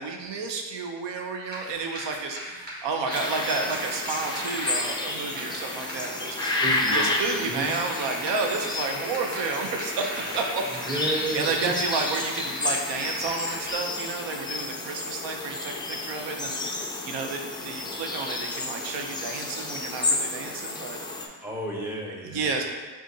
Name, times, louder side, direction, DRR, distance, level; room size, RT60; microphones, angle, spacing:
voice 1, 0.0-6.6 6.9-10.6 10.9-21.0 22.2-22.6, right 4 dB, 75° right, 3 dB, 0.6 m, -31 dB
sound 1, 1.4-13.7, equal, 20° right, 1.3 m, -38 dB
sound 2, 3.1-21.3, left 2 dB, 10° left, 0.3 m, -31 dB
voice 2, 6.4-7.1 7.3-7.7 10.8-11.7 21.4-22.6, right 1 dB, 5° right, -3 dB, 0.7 m, -32 dB
6.2 x 2.4 x 2.7 m, 1.4 s
cardioid pair, 100°, 43 cm